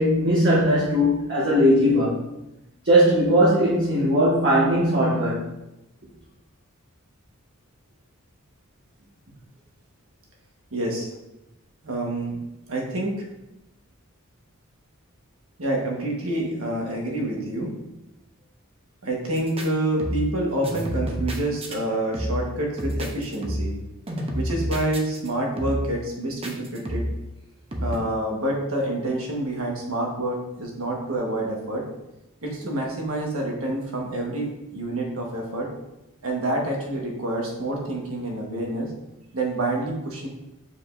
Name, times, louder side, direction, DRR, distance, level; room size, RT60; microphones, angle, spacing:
voice 1, 0.0-2.2 2.8-5.4, equal, 55° right, -7 dB, 1.5 m, -19 dB
voice 2, 10.7-11.1 11.8-12.4 12.7-13.2 15.6-17.7 19.0-23.7 24.3-27.0 27.8-31.9 32.4-35.7 36.2-38.9 39.3-40.3, right 1 dB, 80° right, -1 dB, 1.5 m, -27 dB
sound 1, 19.4-19.7 20.0-20.4 20.6-21.8 22.1-22.5 22.8-23.8 24.1-25.3 25.6-26.0 26.4-27.2 27.7-28.0, equal, 30° right, 0.8 m, -29 dB
6.9 x 5.2 x 2.7 m, 0.92 s
head